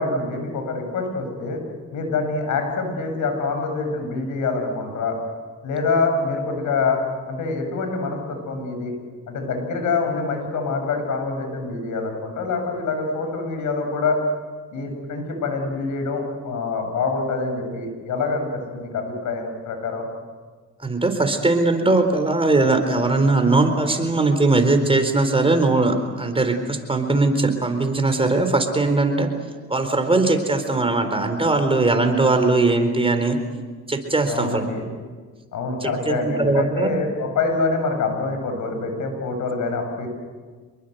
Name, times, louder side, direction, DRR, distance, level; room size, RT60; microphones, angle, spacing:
voice 1, 0.0-1.6 1.9-5.2 5.6-7.0 7.3-8.9 9.3-14.2 14.7-20.1 34.3-34.8 35.5-40.1, left 4 dB, 75° left, 5 dB, 7.5 m, -25 dB
voice 2, 20.8-29.3 29.7-33.4 33.9-34.6 35.8-37.0, right 3 dB, 20° right, 6 dB, 4.1 m, -20 dB
27.0 x 22.5 x 8.1 m, 1.5 s
cardioid pair, 90°, 30 cm